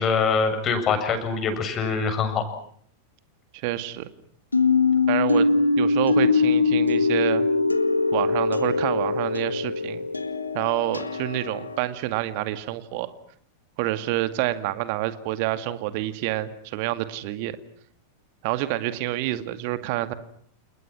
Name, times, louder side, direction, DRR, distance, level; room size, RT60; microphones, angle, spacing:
voice 1, 0.0-2.4, left 5 dB, 30° left, 5 dB, 7.5 m, -24 dB
voice 2, 3.6-4.1 5.1-5.5 5.8-7.5 8.1-10.0 10.5-13.1 13.8-17.6 18.4-20.1, right 15 dB, 45° right, 11 dB, 2.2 m, -28 dB
sound 1, 4.5-11.8, left 4 dB, 80° left, 2.0 m, -22 dB
29.5 x 29.0 x 6.2 m, 0.62 s
figure-of-eight pair, 90°, 0 cm